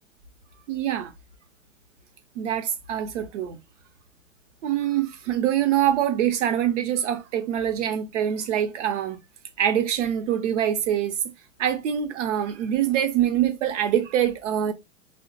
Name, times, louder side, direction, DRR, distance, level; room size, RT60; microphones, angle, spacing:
voice 1, 0.7-1.1 2.4-3.6 4.6-9.2 9.6-11.2 11.6-14.7, right 10 dB, 65° right, 0.7 m, -24 dB
3.4 x 2.1 x 2.7 m
hypercardioid pair, 95°, 40 cm